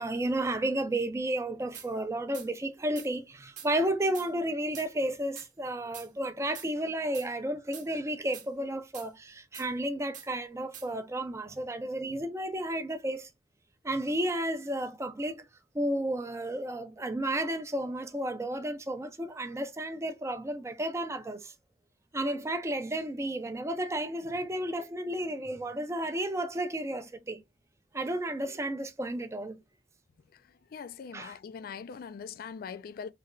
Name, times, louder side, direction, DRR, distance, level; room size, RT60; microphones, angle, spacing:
voice 1, 0.0-13.3 13.8-15.4 15.7-21.5 22.1-27.4 27.9-29.6 31.1-31.3, right 1 dB, 15° right, 0.5 m, -32 dB
sound 1, 1.7-1.9 2.3-2.5 3.0-3.1 3.6-3.7 4.1-4.3 4.7-4.9 5.4-5.5 5.9-6.1 6.6-6.7 7.1-7.3 7.7-7.9 8.3-8.5 8.9-9.1 9.5-9.7 10.1-10.3 10.7-10.9, right 8 dB, 45° right, 0.7 m, -45 dB
voice 2, 30.3-33.1, left 6 dB, 55° left, 0.3 m, -42 dB
3.2 x 2.8 x 2.5 m
head